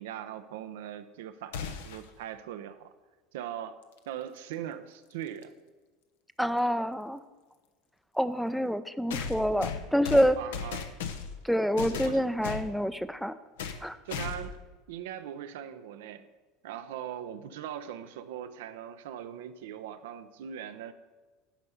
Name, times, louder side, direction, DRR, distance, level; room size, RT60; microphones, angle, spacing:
voice 1, 0.0-2.9 3.3-3.8 4.1-5.5 10.4-10.9 11.9-12.2 14.0-14.6 14.9-16.3 16.6-20.9, right 10 dB, 70° right, 10 dB, 0.6 m, -40 dB
sound 1, 1.5-2.1 4.2-4.3 5.4-5.5 9.1-11.4 11.8-12.7 13.6-13.8 14.1-14.6, left 6 dB, 70° left, 0.7 m, -36 dB
voice 2, 6.4-7.2 8.2-10.4 11.4-13.3 13.8-14.0, equal, ahead, 13 dB, 0.5 m, -27 dB
10.5 x 5.4 x 6.8 m, 1.3 s
figure-of-eight pair, 75°, 0 cm